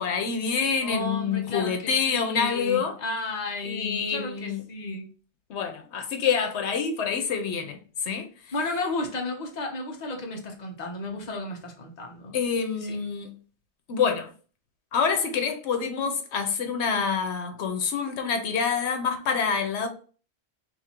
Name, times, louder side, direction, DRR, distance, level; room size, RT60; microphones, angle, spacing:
voice 1, 0.0-3.0 3.6-4.6 5.5-8.5 12.3-13.3 13.9-14.3 14.9-19.9, left 6 dB, 85° left, 1.0 m, -27 dB
voice 2, 0.8-5.1 8.5-12.4 12.9-13.0, left 2 dB, 45° left, 0.9 m, -33 dB
2.8 x 2.6 x 4.3 m
omnidirectional pair, 1.1 m